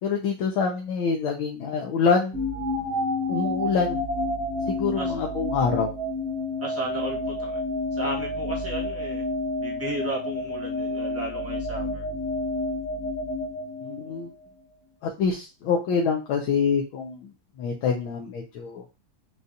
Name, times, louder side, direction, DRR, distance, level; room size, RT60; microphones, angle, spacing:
voice 1, 0.0-2.4 3.3-4.1 4.7-5.9 13.8-14.3 15.0-17.3 17.6-18.8, left 5 dB, 80° left, 0 dB, 1.5 m, -26 dB
sound 1, 2.3-14.4, left 2 dB, 50° right, 0.9 m, -30 dB
voice 2, 6.6-7.6 8.0-9.2 9.6-12.0, right 2 dB, 10° right, -3 dB, 1.0 m, -34 dB
6.4 x 2.3 x 2.7 m, 0.30 s
omnidirectional pair, 2.2 m